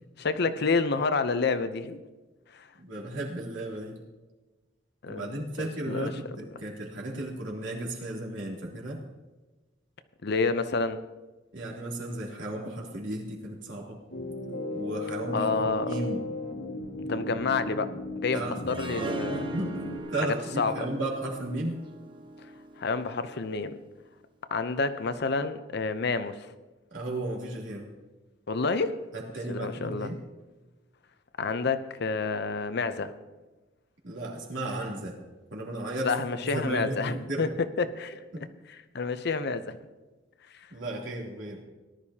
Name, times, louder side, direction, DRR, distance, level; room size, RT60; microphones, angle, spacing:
voice 1, 0.2-2.0 2.5-2.7 5.0-6.1 10.2-11.0 15.3-15.9 17.1-19.4 20.2-20.9 22.8-23.8 24.5-26.5 28.5-29.0 29.5-30.1 31.4-33.1 36.0-37.5 37.8-38.3 38.9-39.8, left 4 dB, 60° left, 11 dB, 0.7 m, -29 dB
voice 2, 2.8-4.0 5.1-6.3 6.6-9.0 11.5-14.0 14.7-16.2 18.3-18.6 18.9-21.8 26.9-27.9 29.1-30.2 34.0-35.2 35.5-36.1 36.5-37.5 38.3-38.4 40.7-41.6, right 1 dB, 80° right, -3 dB, 3.1 m, -34 dB
sound 1, 14.1-20.0, left 1 dB, 80° left, 2.1 m, -36 dB
Harp, 18.7-23.7, right 1 dB, 25° right, 1.0 m, -40 dB
18.5 x 11.5 x 2.9 m, 1.2 s
head